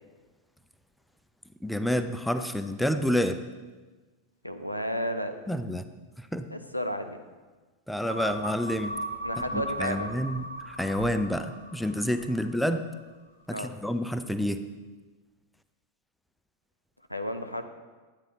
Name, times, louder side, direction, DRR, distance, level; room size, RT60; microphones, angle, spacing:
voice 1, 1.6-3.4 5.5-5.8 6.2-6.4 7.9-8.9 9.5-12.8 13.5-14.7, equal, ahead, 9 dB, 0.5 m, -29 dB
voice 2, 4.4-5.4 6.5-7.2 9.2-10.1 13.5-13.8 17.1-17.6, equal, 90° left, 7 dB, 0.7 m, -32 dB
sound 1, 8.1-12.8 13.1-13.2, equal, 90° right, 0.9 m, -37 dB
11.5 x 9.0 x 4.0 m, 1.3 s
figure-of-eight pair, 90°, 0 cm